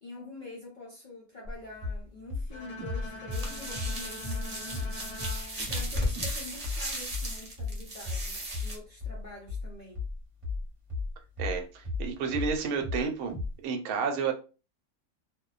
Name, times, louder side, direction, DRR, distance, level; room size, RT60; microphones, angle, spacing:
voice 1, 0.0-4.9 5.6-10.0, left 2 dB, 70° left, 0.4 m, -46 dB
sound 1, 1.5-1.6 1.8-2.0 2.3-4.5 4.7-4.9 5.2-5.4 5.7-5.9 6.2-6.4 6.6-12.1 12.3-13.0 13.3-13.5, left 3 dB, 25° right, 0.9 m, -34 dB
Bowed string instrument, 2.5-6.7, left 2 dB, 90° left, 1.1 m, -45 dB
sound 2, 3.3-8.8, equal, 40° right, 0.5 m, -36 dB
voice 2, 11.4-13.3 13.6-14.3, right 5 dB, 80° right, 1.1 m, -30 dB
2.5 x 2.1 x 2.3 m
omnidirectional pair, 1.6 m